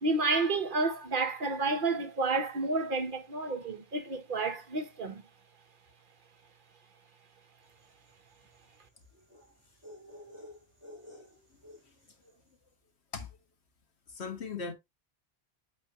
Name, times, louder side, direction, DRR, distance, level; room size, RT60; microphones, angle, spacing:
voice 1, 0.0-5.2, right 3 dB, 55° right, 1.1 m, -30 dB
sound 1, 7.8-12.3, left 1 dB, 30° right, 3.7 m, -52 dB
voice 2, 14.1-14.7, left 5 dB, 80° left, 1.7 m, -38 dB
8.7 x 4.2 x 2.8 m
omnidirectional pair, 1.1 m